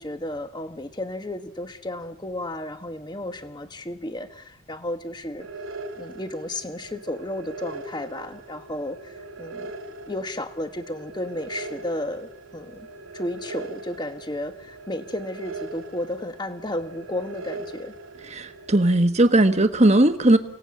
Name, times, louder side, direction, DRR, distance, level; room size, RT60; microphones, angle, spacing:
voice 1, 0.0-5.5 6.0-9.7 10.1-12.9 13.1-17.9, left 1 dB, 20° left, 9 dB, 1.2 m, -33 dB
sound 1, 5.4-18.9, right 2 dB, 80° right, 3.2 m, -40 dB
voice 2, 18.3-20.4, right 1 dB, 30° right, 9 dB, 1.4 m, -18 dB
29.5 x 18.0 x 8.6 m, 0.82 s
head